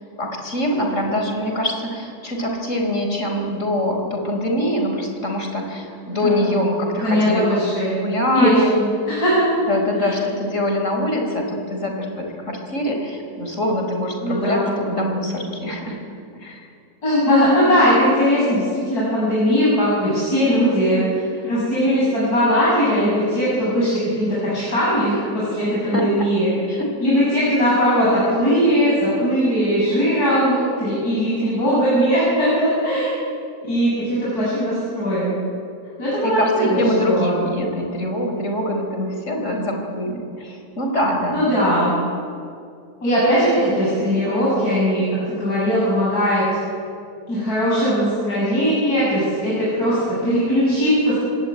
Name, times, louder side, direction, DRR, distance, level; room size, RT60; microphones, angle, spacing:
voice 1, 0.2-7.6 8.0-8.7 9.6-16.0 16.4-16.7 25.8-26.3 26.7-26.9 36.2-41.4, left 1 dB, 45° left, 2 dB, 4.9 m, -24 dB
voice 2, 7.0-7.9 8.3-9.5 10.0-10.1 14.2-14.7 17.0-21.0 21.4-26.5 27.0-33.1 33.6-35.4 36.0-37.3 41.3-42.0 43.0-46.4 47.3-51.1, equal, 60° left, -8 dB, 8.7 m, -19 dB
26.0 x 19.5 x 9.5 m, 2.4 s
omnidirectional pair, 1.8 m